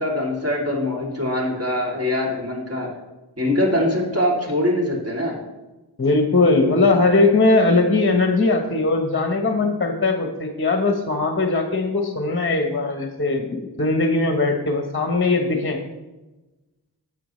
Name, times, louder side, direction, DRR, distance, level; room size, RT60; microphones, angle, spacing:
voice 1, 0.0-2.9 3.4-5.4, left 1 dB, 35° right, -2 dB, 2.8 m, -23 dB
voice 2, 6.0-15.8, left 3 dB, 30° left, 4 dB, 1.0 m, -20 dB
11.5 x 7.4 x 3.1 m, 1.1 s
wide cardioid pair, 90°, 41 cm